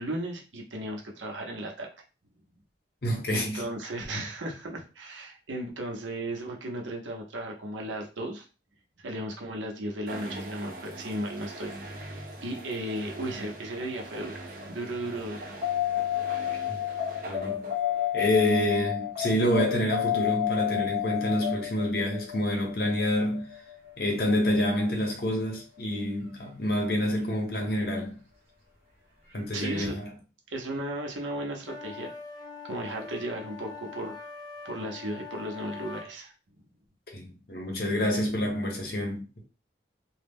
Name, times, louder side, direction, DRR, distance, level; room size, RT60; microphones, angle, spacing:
voice 1, 0.0-1.9 3.3-8.5 9.0-11.7 12.4-15.6 29.5-29.9 30.5-32.1 32.6-34.1 34.6-36.3, right 1 dB, 90° right, 0.7 m, -35 dB
voice 2, 3.0-3.7 16.7-16.8 17.3-17.7 18.1-23.5 24.0-28.2 29.3-30.1 37.1-39.4, left 1 dB, 55° left, 0.8 m, -28 dB
sound 1, 10.1-18.3, right 1 dB, 50° right, 0.5 m, -42 dB
sound 2, 15.6-24.0 26.7-26.8, left 12 dB, 30° right, 0.9 m, -30 dB
sound 3, 31.6-36.1, left 5 dB, 20° left, 0.4 m, -43 dB
2.2 x 2.0 x 3.5 m
head